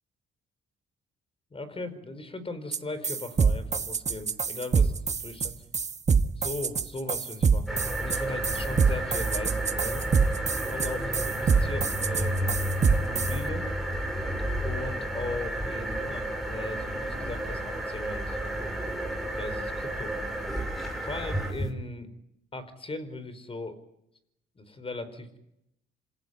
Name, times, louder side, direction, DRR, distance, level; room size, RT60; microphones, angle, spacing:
voice 1, 1.5-5.5 6.4-10.1 10.7-12.7 13.0-13.7 14.6-18.4 19.3-20.1 20.8-22.1 22.5-23.8 24.5-25.4, left 2 dB, 30° left, 13 dB, 4.7 m, -38 dB
sound 1, 2.7-2.8 3.0-13.4, right 5 dB, 35° right, 1.3 m, -25 dB
sound 2, 7.7-21.7, right 1 dB, ahead, 6.5 m, -31 dB
27.0 x 16.5 x 9.6 m, 0.81 s
cardioid pair, 90°, 20 cm